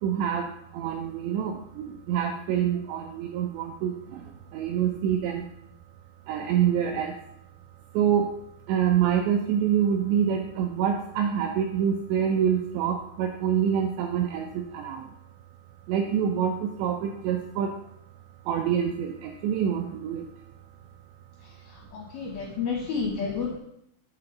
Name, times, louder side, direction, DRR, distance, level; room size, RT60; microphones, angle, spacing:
voice 1, 0.0-5.5 6.3-7.2 7.9-15.2 15.9-17.9 18.5-20.4, right 8 dB, 85° right, 3 dB, 2.5 m, -26 dB
voice 2, 21.4-23.6, left 5 dB, 80° left, 0 dB, 2.1 m, -31 dB
8.2 x 3.9 x 6.8 m, 0.73 s
omnidirectional pair, 5.6 m